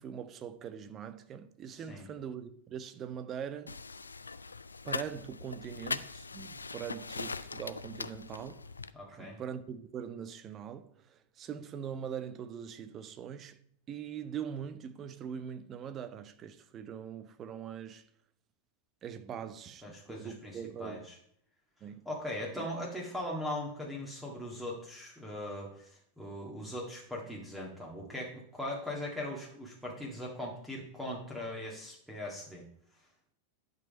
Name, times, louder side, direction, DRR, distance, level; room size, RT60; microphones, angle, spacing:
voice 1, 0.0-3.8 4.8-8.7 9.1-13.6 13.9-18.0 19.0-21.1 21.8-22.0 22.5-22.7, right 8 dB, 30° right, 0.8 m, -42 dB
voice 2, 1.7-2.1 8.9-9.4 19.3-19.4 19.8-21.2 22.1-32.6, left 1 dB, 5° right, 1.9 m, -40 dB
sound 1, 3.7-8.9, left 4 dB, 75° left, 0.4 m, -41 dB
11.0 x 5.4 x 5.2 m
figure-of-eight pair, 90°, 0 cm